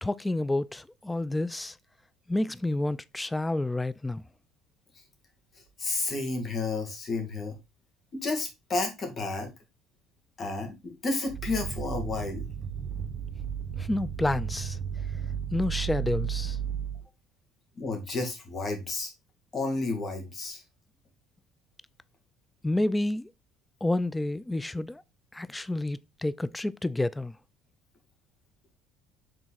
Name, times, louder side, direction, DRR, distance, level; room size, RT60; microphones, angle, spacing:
voice 1, 0.0-1.8 2.3-4.2 13.8-14.8 15.5-16.6 22.6-23.3 23.8-25.0 25.3-27.4, left 2 dB, 10° left, 0.3 m, -29 dB
voice 2, 5.8-7.6 8.2-9.5 10.4-12.4 17.8-19.1 19.5-20.6, left 3 dB, 35° left, 2.2 m, -31 dB
sound 1, 11.3-17.0, right 8 dB, 50° right, 1.3 m, -34 dB
6.2 x 3.9 x 4.0 m
supercardioid pair, 105°, 0 cm